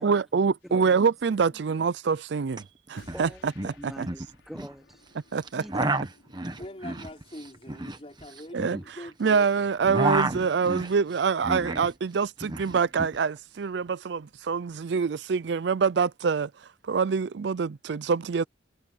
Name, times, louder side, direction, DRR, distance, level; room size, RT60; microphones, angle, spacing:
voice 1, 0.0-2.6 2.9-4.1 5.3-5.8 8.5-8.8 9.2-16.5 16.9-18.4, right 5 dB, 65° right, 0.4 m, -25 dB
sound 1, 0.6-0.9 3.0-8.9, left 2 dB, 85° left, 5.6 m, -59 dB
voice 2, 0.6-1.0 3.1-3.5 3.8-5.1 5.5-6.0, equal, ahead, 1.2 m, -44 dB
sound 2, 2.5-2.6 2.9-3.3 3.5-4.7 5.4-9.4 9.7-11.9 12.2-13.2, right 2 dB, 20° right, 1.2 m, -31 dB
voice 3, 6.6-9.5, left 1 dB, 30° left, 4.3 m, -43 dB
head